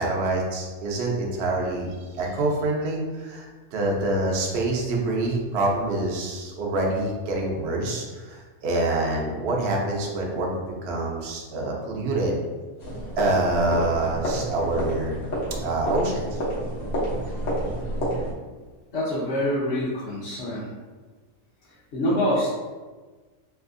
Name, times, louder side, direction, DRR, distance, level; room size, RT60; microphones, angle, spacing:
voice 1, 0.0-12.4 13.2-15.1 15.6-16.4, right 2 dB, 55° right, -1 dB, 0.7 m, -26 dB
sound 1, 12.8-18.3, equal, 70° left, 1.4 m, -29 dB
voice 2, 18.9-20.7 21.9-22.5, equal, 55° left, -9 dB, 0.9 m, -25 dB
3.3 x 2.8 x 2.5 m, 1.3 s
omnidirectional pair, 1.6 m